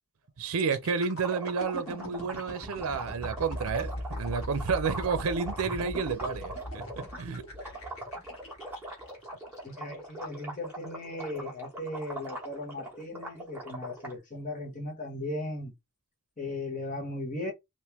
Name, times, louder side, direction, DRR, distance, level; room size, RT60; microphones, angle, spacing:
voice 1, 0.4-7.4, right 5 dB, 85° right, 0.5 m, -31 dB
sound 1, 0.6-10.4 10.9-11.1, equal, 75° left, 1.4 m, -41 dB
sound 2, 1.2-7.2 7.5-14.1, right 1 dB, 10° right, 1.2 m, -41 dB
voice 2, 9.6-15.7 16.4-17.5, left 1 dB, 35° left, 1.0 m, -37 dB
3.5 x 2.5 x 2.9 m
head